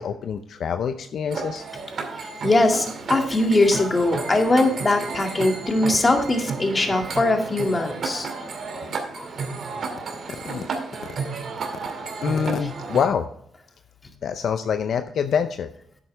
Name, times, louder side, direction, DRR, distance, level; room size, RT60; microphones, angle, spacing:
voice 1, 0.0-1.6 10.4-10.7 12.2-13.3 14.2-15.7, left 7 dB, 70° left, 8 dB, 0.6 m, -25 dB
sound 1, 1.3-13.1, right 4 dB, 60° right, 2.3 m, -32 dB
voice 2, 2.2-8.3 8.7-8.9 9.1-9.3, left 2 dB, 30° left, 3 dB, 2.2 m, -21 dB
11.0 x 8.3 x 3.3 m, 0.69 s
cardioid pair, 75°, 0 cm